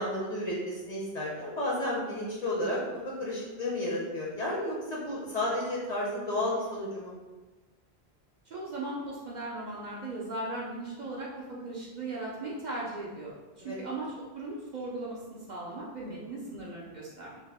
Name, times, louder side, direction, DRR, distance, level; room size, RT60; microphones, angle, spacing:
voice 1, 0.0-2.8 3.2-7.1 13.6-13.8 16.1-16.2, left 1 dB, 50° left, -5 dB, 0.6 m, -32 dB
voice 2, 8.5-17.4, right 2 dB, 55° right, -5 dB, 0.5 m, -38 dB
2.8 x 2.1 x 3.3 m, 1.2 s
omnidirectional pair, 1.1 m